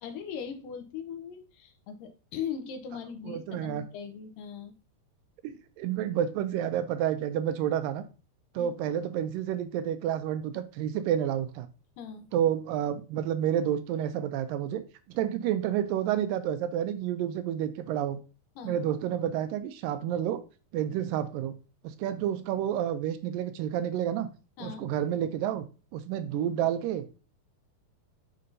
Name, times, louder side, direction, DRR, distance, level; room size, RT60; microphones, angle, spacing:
voice 1, 0.0-4.7 8.6-8.7 12.0-12.3 18.6-18.8 24.6-24.9, left 7 dB, 75° left, 6 dB, 2.5 m, -39 dB
voice 2, 3.3-3.8 5.4-8.0 8.6-11.7 12.3-14.8 15.2-18.2 18.6-20.4 20.7-21.6 21.8-24.3 24.6-25.6 25.9-27.0, right 10 dB, 80° right, 10 dB, 2.2 m, -29 dB
9.0 x 5.4 x 2.7 m, 0.34 s
omnidirectional pair, 4.1 m